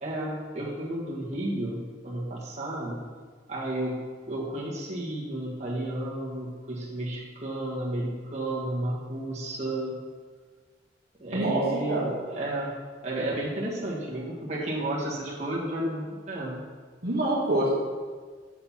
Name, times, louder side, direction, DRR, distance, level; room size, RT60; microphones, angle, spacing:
voice 1, 0.0-3.0 3.5-4.0 4.3-10.0 11.2-12.7 13.0-16.6, right 1 dB, 40° right, -5 dB, 1.6 m, -32 dB
voice 2, 11.3-11.6 11.9-12.1 17.0-17.7, right 1 dB, 55° right, -5 dB, 1.4 m, -25 dB
8.2 x 5.8 x 4.3 m, 1.5 s
head